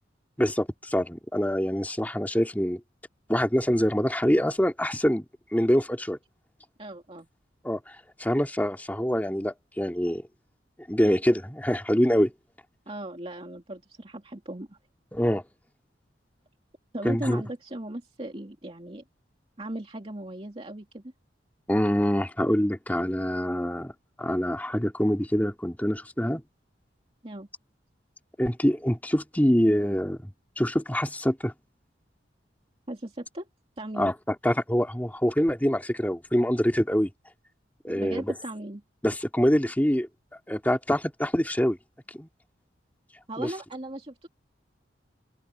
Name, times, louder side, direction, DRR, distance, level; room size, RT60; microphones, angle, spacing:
voice 1, 0.4-2.8 3.3-5.3 5.5-6.2 7.6-10.2 10.9-12.3 15.1-15.4 17.0-17.4 21.7-23.9 24.2-26.4 28.4-31.5 34.0-37.1 37.8-38.3 39.0-40.1 40.5-41.8 42.1-42.3 43.4-43.5, equal, 10° left, 2.3 m, -25 dB
voice 2, 6.8-7.3 12.9-14.8 16.9-19.0 19.6-21.0 27.2-27.5 32.9-33.5 33.8-34.1 37.9-38.8 43.3-44.3, right 1 dB, 30° right, 2.5 m, -37 dB
open air
head